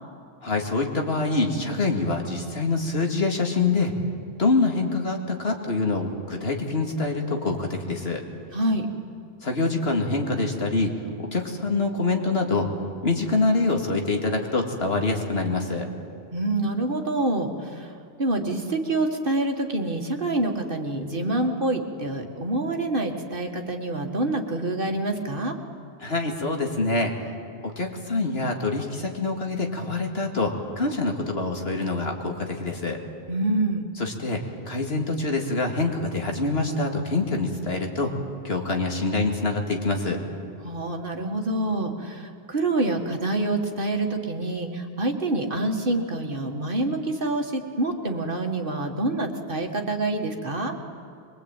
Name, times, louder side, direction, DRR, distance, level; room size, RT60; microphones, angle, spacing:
voice 1, 0.4-3.9 4.4-8.2 9.4-12.7 13.0-15.9 26.0-27.1 27.8-33.0 34.0-34.4 34.7-38.2 38.4-40.2, left 3 dB, 75° left, 2 dB, 2.6 m, -25 dB
voice 2, 8.5-8.9 16.3-25.6 33.3-33.8 40.6-50.8, right 2 dB, 55° right, 3 dB, 2.1 m, -26 dB
23.5 x 22.5 x 9.0 m, 2.4 s
omnidirectional pair, 1.1 m